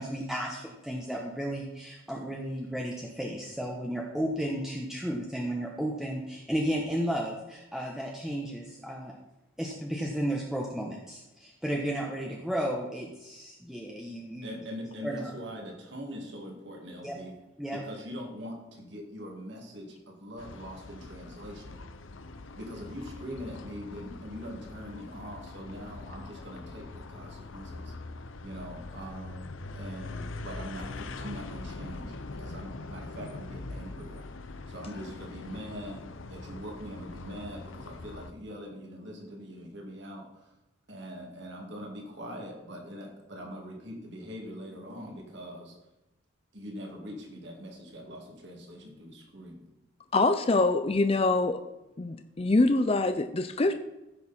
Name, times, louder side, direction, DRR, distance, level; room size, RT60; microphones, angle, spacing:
voice 1, 0.0-9.2 9.6-14.6 15.0-15.3 17.0-17.2 17.6-17.8, equal, ahead, -2 dB, 1.0 m, -33 dB
voice 2, 14.4-17.3 17.7-21.8 22.5-27.9 28.4-34.3 34.7-36.0 36.3-40.5 40.9-45.8 46.5-49.6, equal, 55° right, 0 dB, 2.4 m, -42 dB
sound 1, 20.4-38.3, left 3 dB, 70° left, 0.7 m, -43 dB
voice 3, 50.1-51.6 52.0-53.7, left 2 dB, 30° left, 8 dB, 0.5 m, -24 dB
15.0 x 6.5 x 4.3 m, 0.98 s
head